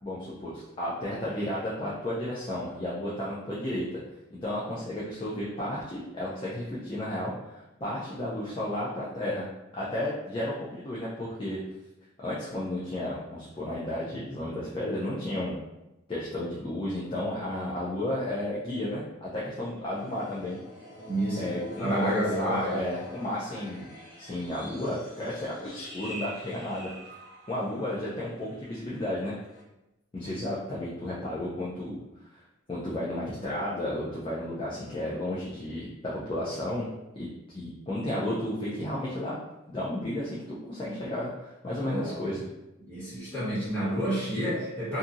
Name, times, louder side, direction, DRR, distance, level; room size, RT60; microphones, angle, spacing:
voice 1, 0.0-4.0 4.3-9.5 9.7-11.6 12.2-15.6 16.1-20.6 21.4-23.9 24.2-26.9 27.5-29.3 30.1-32.4 32.7-36.9 37.1-37.3 37.5-39.3 39.7-42.4, left 1 dB, 25° left, -7 dB, 0.4 m, -33 dB
sound 1, 19.9-28.5 28.8-29.1 29.5-29.6, right 1 dB, 70° left, 1.0 m, -44 dB
voice 2, 21.1-21.4 21.8-22.8 41.8-42.3 42.8-45.0, equal, 10° left, -12 dB, 1.5 m, -29 dB
2.7 x 2.6 x 2.4 m, 0.95 s
head